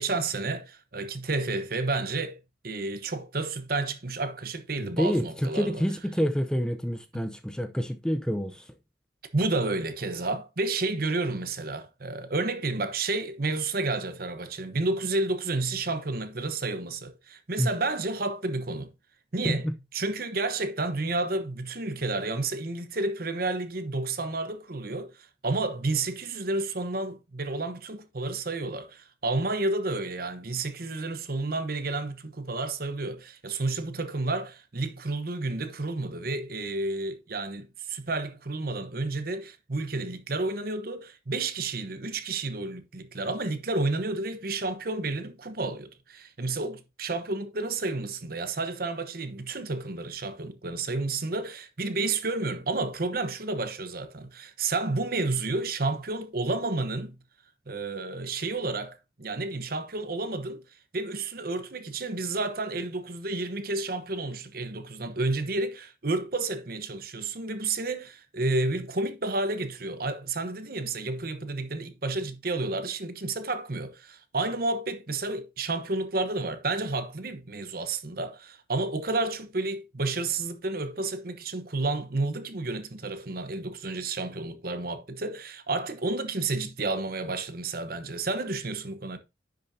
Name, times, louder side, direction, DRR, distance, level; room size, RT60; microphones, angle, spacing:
voice 1, 0.0-2.4 2.6-5.8 7.1-7.3 9.3-18.9 19.3-19.7 19.9-57.1 57.7-60.6 60.9-89.2, right 2 dB, 55° right, 1.1 m, -31 dB
voice 2, 4.8-8.6 17.6-17.7, equal, 5° left, 0.6 m, -28 dB
10.5 x 6.5 x 2.8 m
head